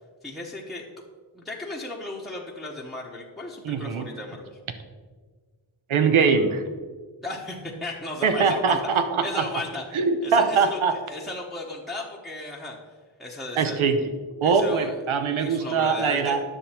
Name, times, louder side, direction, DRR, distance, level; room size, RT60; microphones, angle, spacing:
voice 1, 0.2-0.8 1.3-4.6 7.2-12.8 13.2-13.9 14.4-15.0 15.4-16.4, left 2 dB, ahead, -3 dB, 1.0 m, -35 dB
voice 2, 3.6-4.1 5.9-6.6 8.2-9.4 9.9-10.9 13.6-14.0 14.4-16.4, right 5 dB, 80° right, 8 dB, 1.0 m, -22 dB
10.0 x 6.9 x 4.4 m, 1.5 s
wide cardioid pair, 115°, 48 cm